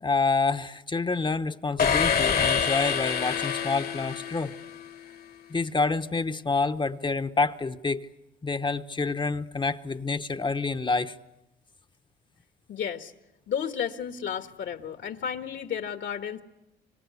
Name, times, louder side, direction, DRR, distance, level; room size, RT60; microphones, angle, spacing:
voice 1, 0.0-4.5 5.5-8.1 8.4-11.2, left 4 dB, 25° left, 0.9 m, -27 dB
sound 1, 1.8-4.9, left 7 dB, 50° left, 1.3 m, -26 dB
voice 2, 12.7-13.1 13.5-16.4, left 8 dB, 70° left, 1.6 m, -32 dB
25.5 x 25.5 x 8.3 m
cardioid pair, 90°, 20 cm